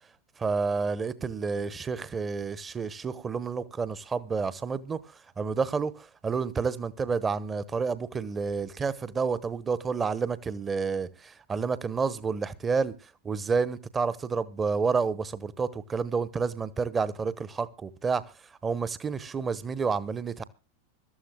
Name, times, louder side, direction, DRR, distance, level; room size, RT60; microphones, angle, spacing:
voice 1, 0.4-5.0 5.4-12.9 13.3-18.2 18.6-20.4, right 5 dB, 20° right, 1.0 m, -29 dB
24.5 x 13.0 x 2.2 m
figure-of-eight pair, 90°, 0 cm